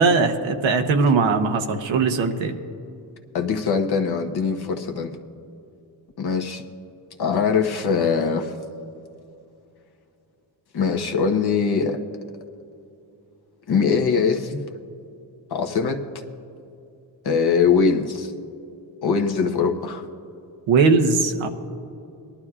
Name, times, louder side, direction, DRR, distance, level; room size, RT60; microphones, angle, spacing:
voice 1, 0.0-2.6 20.7-21.5, right 4 dB, 85° right, 6 dB, 1.0 m, -19 dB
voice 2, 3.3-5.1 6.2-6.6 7.2-8.5 10.7-12.0 13.7-14.6 15.5-16.0 17.2-18.3 19.0-20.0, left 5 dB, 55° left, 4 dB, 1.1 m, -22 dB
19.5 x 11.5 x 2.4 m, 2.6 s
cardioid pair, 65°, 45 cm